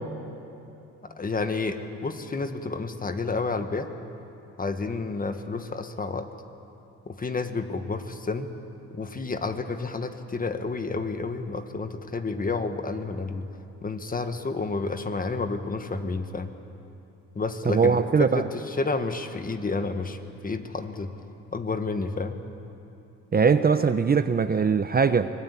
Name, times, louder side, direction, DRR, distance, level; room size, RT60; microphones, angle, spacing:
voice 1, 1.2-3.9 4.6-6.3 7.1-8.5 8.9-13.5 13.8-16.5 17.4-21.1 21.5-22.4, left 3 dB, 30° left, 7 dB, 1.7 m, -30 dB
voice 2, 17.7-18.5 23.3-25.3, right 5 dB, 30° right, 10 dB, 0.8 m, -21 dB
25.0 x 19.5 x 8.5 m, 2.8 s
cardioid pair, 90°, 30 cm